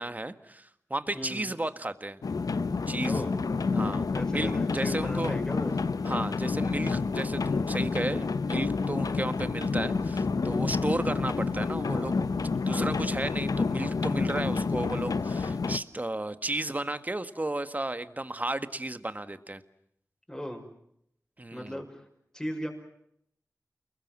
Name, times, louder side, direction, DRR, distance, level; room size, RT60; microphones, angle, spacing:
voice 1, 0.0-2.2 2.9-3.2 3.7-5.4 6.0-12.2 12.6-19.6 21.4-21.8, right 2 dB, 25° right, 11 dB, 1.7 m, -33 dB
voice 2, 1.1-1.5 3.0-3.4 4.1-5.7 10.8-11.1 12.7-13.0 20.3-20.6 21.5-22.0 22.3-22.7, equal, 10° left, 1 dB, 5.9 m, -37 dB
sound 1, 2.2-15.8, left 4 dB, 85° left, 1.0 m, -29 dB
29.5 x 21.5 x 7.6 m, 0.73 s
wide cardioid pair, 80°, 6 cm